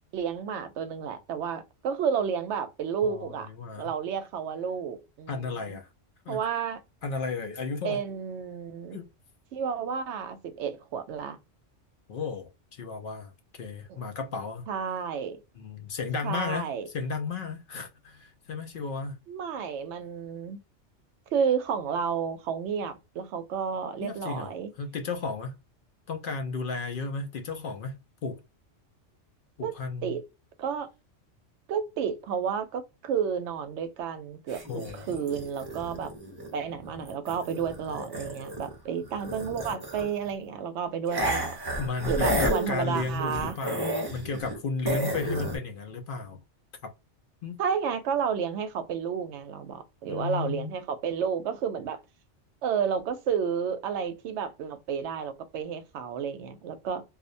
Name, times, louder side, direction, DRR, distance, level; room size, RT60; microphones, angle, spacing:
voice 1, 0.1-3.5 3.8-5.8 6.3-6.8 7.8-9.0 9.5-11.4 13.9-14.0 14.7-15.4 16.2-16.9 19.3-20.6 21.3-24.7 29.6-29.8 30.0-30.2 30.6-30.9 31.7-36.1 36.5-41.6 42.1-43.6 47.6-52.0 52.6-57.0, right 7 dB, 70° right, 0.8 m, -31 dB
voice 2, 3.0-3.9 5.3-5.9 6.3-6.4 7.0-8.0 8.9-9.1 12.1-13.3 13.6-14.6 15.6-19.2 24.0-24.5 24.8-25.6 26.1-28.4 29.6-30.2 34.7-35.1 41.8-46.4 46.8-46.9 47.4-47.6 50.1-50.8, left 4 dB, 60° left, 0.6 m, -34 dB
sound 1, 34.5-38.7 39.0-40.3 41.1-44.6 44.9-45.6, right 1 dB, 25° right, 0.5 m, -32 dB
2.4 x 2.1 x 2.5 m
omnidirectional pair, 1.3 m